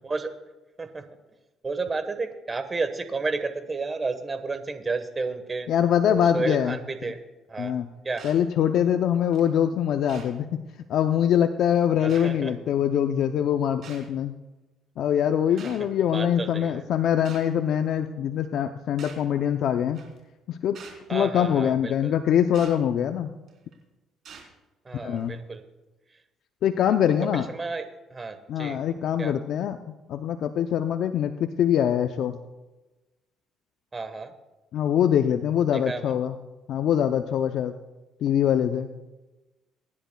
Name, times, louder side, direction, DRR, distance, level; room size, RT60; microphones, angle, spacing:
voice 1, 1.6-5.7 6.1-7.7 8.0-8.2 12.0-12.5 16.1-16.8 21.1-22.1 24.8-25.6 27.3-27.9 28.1-28.8 29.2-29.3 33.9-34.3 35.7-36.1, right 3 dB, 25° right, 10 dB, 1.2 m, -31 dB
voice 2, 5.7-6.8 7.6-7.9 8.2-10.6 10.9-14.3 15.0-20.0 20.5-20.8 21.1-23.3 25.0-25.4 26.6-27.5 28.5-32.4 34.7-36.4 36.7-37.7 38.2-38.9, left 9 dB, 65° left, 7 dB, 0.5 m, -23 dB
sound 1, 8.2-8.4 9.3-9.4 10.1-10.3 11.3-11.4 12.1-12.3 13.8-14.1 15.6-15.8 17.2-17.5 19.0-19.2 19.9-20.2 20.7-21.0 22.5-22.7 23.5-23.7 24.2-24.5 25.2-25.3, right 6 dB, 60° right, 3.8 m, -45 dB
24.0 x 10.5 x 2.3 m, 1.1 s
cardioid pair, 95°, 0 cm